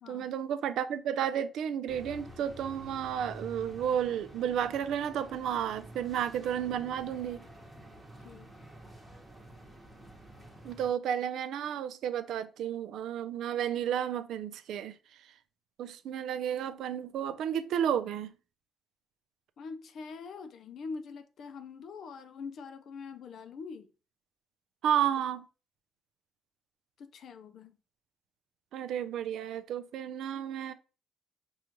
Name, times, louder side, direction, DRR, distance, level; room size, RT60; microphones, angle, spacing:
voice 1, 0.1-7.4 10.6-14.9 15.8-18.3 24.8-25.5 28.7-30.7, right 9 dB, 80° right, 0.3 m, -32 dB
sound 1, 1.9-10.9, right 1 dB, 10° right, 0.9 m, -49 dB
voice 2, 8.2-8.7 19.6-23.9 27.0-27.8, left 5 dB, 65° left, 0.4 m, -44 dB
4.9 x 2.3 x 2.9 m
cardioid pair, 90°, 0 cm